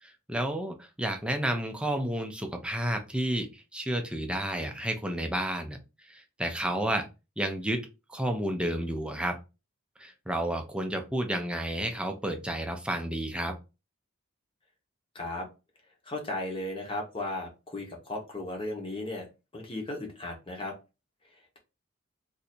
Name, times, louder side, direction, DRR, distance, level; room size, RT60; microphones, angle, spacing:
voice 1, 0.0-5.8 6.0-7.1 7.4-9.4 10.0-13.6, right 1 dB, 5° right, 4 dB, 0.5 m, -31 dB
voice 2, 15.1-15.5 16.0-19.3 19.5-20.7, left 2 dB, 25° left, 1 dB, 1.0 m, -35 dB
2.6 x 2.6 x 4.3 m, 0.28 s
head